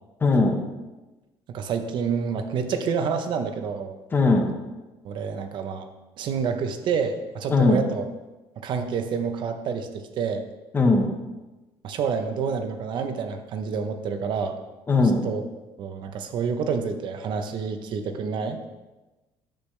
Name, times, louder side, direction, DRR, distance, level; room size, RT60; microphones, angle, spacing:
voice 1, 0.2-0.6 4.1-4.5 7.5-7.8 10.7-11.1 14.9-15.3, left 3 dB, 20° left, 4 dB, 1.0 m, -19 dB
voice 2, 1.5-4.0 5.0-5.9 6.2-8.0 8.6-10.5 11.8-14.6 15.2-15.4 15.8-18.6, right 6 dB, 50° right, 7 dB, 0.8 m, -28 dB
10.0 x 8.0 x 3.3 m, 1.1 s
cardioid pair, 160°, 10 cm